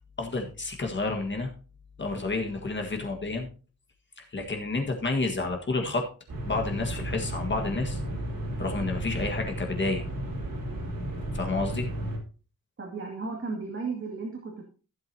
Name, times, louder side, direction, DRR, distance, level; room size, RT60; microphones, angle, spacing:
voice 1, 0.2-1.5 2.0-3.5 4.2-6.1 6.5-8.0 8.6-10.0 11.3-11.9, left 3 dB, 30° left, 3 dB, 1.7 m, -30 dB
sound 1, 6.3-12.2, right 1 dB, 65° right, 3.2 m, -33 dB
voice 2, 12.8-14.7, right 4 dB, 35° right, -1 dB, 2.3 m, -34 dB
15.5 x 7.7 x 2.8 m, 0.36 s
wide cardioid pair, 150°, 36 cm